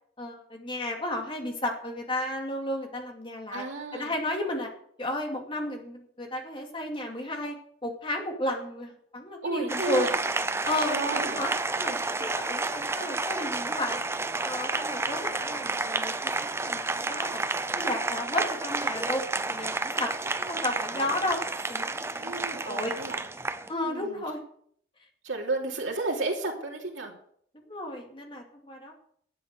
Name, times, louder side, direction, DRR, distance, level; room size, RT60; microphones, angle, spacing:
voice 1, 0.2-3.6 3.9-4.7 5.0-7.6 7.8-10.1 10.7-11.5 11.8-14.0 14.4-17.5 17.7-19.2 19.5-20.1 20.5-21.4 21.7-22.9 23.7-24.4 27.5-28.9, left 1 dB, 25° left, 2 dB, 2.4 m, -33 dB
voice 2, 3.5-4.2 9.4-10.1 10.9-11.4 22.2-23.2 23.8-24.2 25.2-27.1, right 3 dB, 85° right, 0 dB, 3.1 m, -32 dB
Applause, 9.7-23.7, right 3 dB, 15° right, 0.5 m, -30 dB
12.0 x 8.0 x 6.6 m, 0.64 s
head